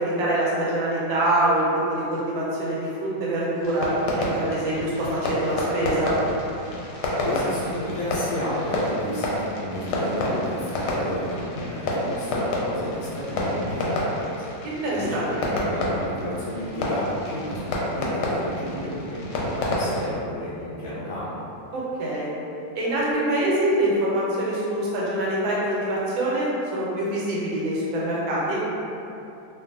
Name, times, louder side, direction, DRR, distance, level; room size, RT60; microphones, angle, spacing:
voice 1, 0.0-3.9 4.2-6.1 14.6-15.2 21.7-22.3 22.7-28.6, right 1 dB, 90° right, -6 dB, 1.4 m, -25 dB
Fireworks, 3.6-20.1, left 1 dB, 75° left, 1.0 m, -29 dB
voice 2, 7.2-14.5 14.9-21.3, left 1 dB, 50° left, -9 dB, 0.7 m, -32 dB
2.9 x 2.4 x 2.5 m, 2.8 s
omnidirectional pair, 2.0 m